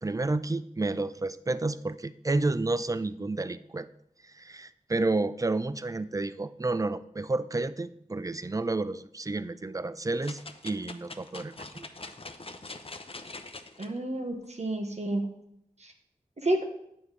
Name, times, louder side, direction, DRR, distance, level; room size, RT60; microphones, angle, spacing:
voice 1, 0.0-3.9 4.3-11.9, right 2 dB, 25° right, 14 dB, 0.4 m, -30 dB
sound 1, 10.2-13.9 14.4-14.5, left 3 dB, 45° left, 0.7 m, -43 dB
voice 2, 13.8-15.2 15.8-15.9 16.4-16.6, right 1 dB, 55° right, 4 dB, 1.3 m, -30 dB
9.5 x 7.0 x 3.3 m, 0.75 s
wide cardioid pair, 45°, 14 cm